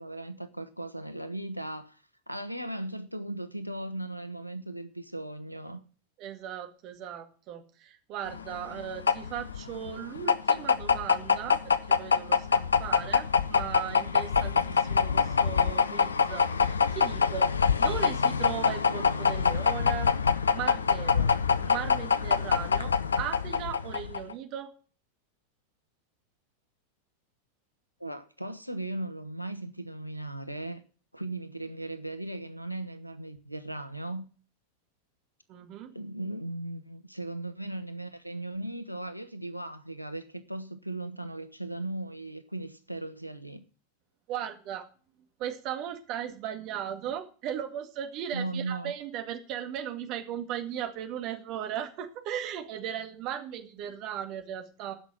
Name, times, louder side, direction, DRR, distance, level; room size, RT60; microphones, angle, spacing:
voice 1, 0.0-2.0 2.3-5.8 28.0-30.8 31.1-34.2 35.9-43.6 48.3-48.9, right 2 dB, 90° left, 1.1 m, -37 dB
voice 2, 6.2-20.1 20.5-21.3 21.6-24.7 35.5-35.9 44.3-44.9 45.4-55.0, right 9 dB, 40° right, 2.0 m, -37 dB
sound 1, 8.3-24.3, left 6 dB, 75° left, 0.7 m, -25 dB
15.0 x 6.1 x 7.4 m
figure-of-eight pair, 90°, 0 cm